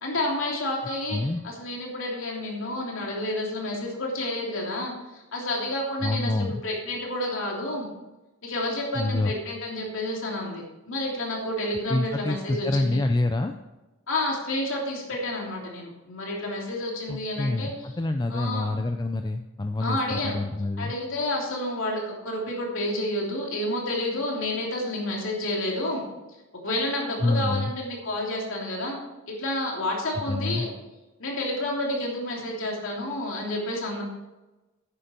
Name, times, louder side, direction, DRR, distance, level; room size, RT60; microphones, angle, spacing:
voice 1, 0.0-7.9 8.4-13.0 14.1-17.9 18.3-18.7 19.8-20.4 20.8-26.0 26.6-29.0 29.3-30.7 31.2-34.0, left 1 dB, 65° left, -2 dB, 3.0 m, -30 dB
voice 2, 1.1-1.4 6.0-6.6 9.0-9.3 11.9-13.5 17.1-20.9 27.2-27.7 30.3-30.7, left 2 dB, 20° left, 6 dB, 0.5 m, -27 dB
10.5 x 9.8 x 4.4 m, 1.1 s
head